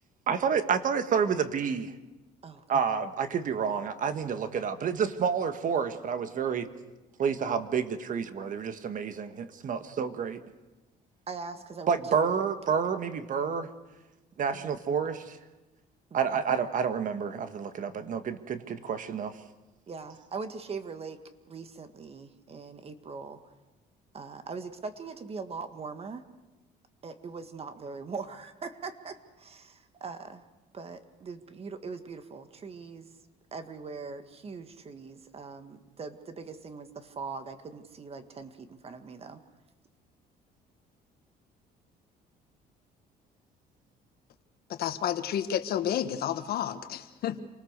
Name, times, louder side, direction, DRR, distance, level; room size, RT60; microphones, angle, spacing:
voice 1, 0.3-1.9 2.7-6.6 7.2-10.4 11.9-13.7 14.4-15.4 16.1-19.4, right 6 dB, 50° right, 10 dB, 1.5 m, -29 dB
voice 2, 11.3-12.4 14.5-14.7 16.1-16.3 19.9-21.2 21.5-23.4 24.1-26.2 27.0-30.5 30.7-33.2 33.5-39.4 47.3-47.4, right 4 dB, 35° right, 9 dB, 1.8 m, -41 dB
voice 3, 44.7-47.4, left 10 dB, 65° left, 10 dB, 1.4 m, -30 dB
27.5 x 19.5 x 6.7 m, 1.1 s
cardioid pair, 110°, 17 cm